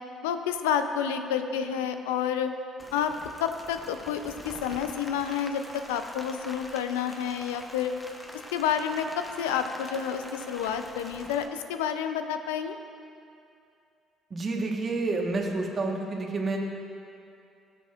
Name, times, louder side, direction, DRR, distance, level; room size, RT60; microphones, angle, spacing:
voice 1, 0.2-2.5 2.9-3.1 3.4-7.9 8.5-12.8, left 8 dB, 90° left, 8 dB, 0.4 m, -29 dB
Rain, 2.8-11.5, left 1 dB, 10° left, 1.0 m, -45 dB
voice 2, 14.3-16.6, right 3 dB, 40° right, 1 dB, 1.3 m, -29 dB
15.0 x 6.9 x 2.4 m, 2.6 s
supercardioid pair, 65°, 0 cm